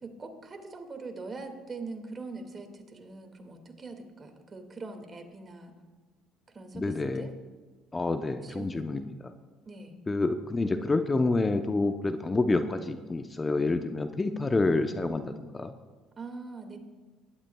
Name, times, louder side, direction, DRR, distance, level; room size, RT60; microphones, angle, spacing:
voice 1, 0.0-5.8 6.5-7.3 8.4-8.8 9.7-10.0 16.2-16.8, right 3 dB, 35° right, 5 dB, 2.1 m, -42 dB
voice 2, 6.7-7.3 7.9-9.3 10.1-15.7, left 3 dB, 25° left, 8 dB, 0.7 m, -28 dB
19.5 x 12.0 x 2.3 m, 1.4 s
supercardioid pair, 75°, 0 cm